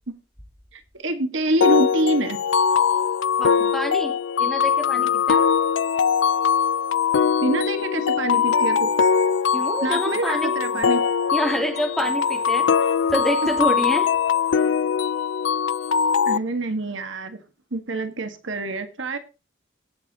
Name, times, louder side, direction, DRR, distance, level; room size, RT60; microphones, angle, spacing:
voice 1, 0.7-2.4 7.4-8.9 9.8-11.0 16.3-17.4 17.7-19.2, right 2 dB, 70° right, 8 dB, 1.5 m, -26 dB
sound 1, 1.6-16.4, left 6 dB, 65° left, 0.4 m, -21 dB
voice 2, 3.4-5.5 9.5-10.9 11.3-14.1, equal, ahead, 2 dB, 2.3 m, -27 dB
17.5 x 6.4 x 4.0 m, 0.32 s
head